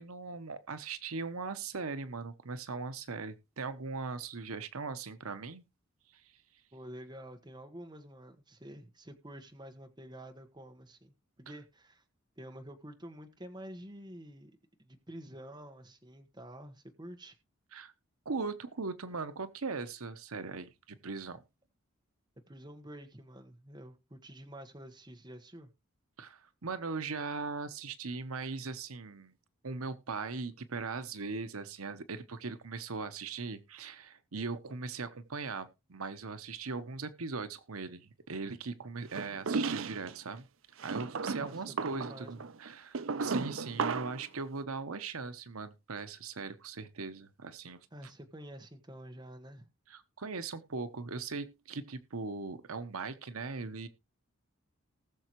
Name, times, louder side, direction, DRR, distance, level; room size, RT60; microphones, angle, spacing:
voice 1, 0.0-5.6 6.1-6.2 17.7-17.9 18.2-21.4 26.2-29.3 29.6-40.4 40.8-47.8 49.9-53.9, right 4 dB, 85° right, 1.0 m, -39 dB
voice 2, 6.7-12.0 12.4-14.5 14.8-17.3 22.5-25.7 41.4-42.5 47.9-49.7, right 1 dB, 20° right, 1.3 m, -49 dB
sound 1, 39.1-40.1 40.8-44.3, right 4 dB, 65° right, 0.6 m, -35 dB
19.5 x 6.8 x 3.1 m
head